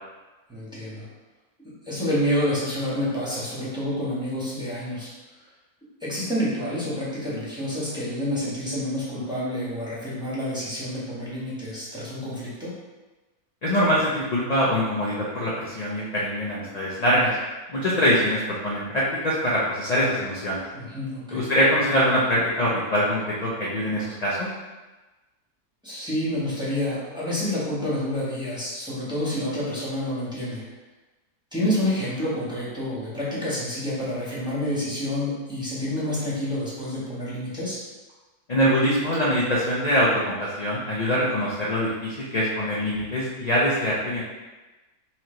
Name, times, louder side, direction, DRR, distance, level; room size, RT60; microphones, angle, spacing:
voice 1, 0.5-1.1 1.6-5.1 6.0-12.7 20.7-21.4 25.8-30.6 31.5-37.8, left 1 dB, 5° right, -9 dB, 1.3 m, -28 dB
voice 2, 13.6-17.4 17.7-20.6 21.3-24.5 38.5-44.2, equal, 45° left, -7 dB, 0.5 m, -23 dB
4.3 x 3.1 x 3.9 m, 1.2 s
omnidirectional pair, 1.6 m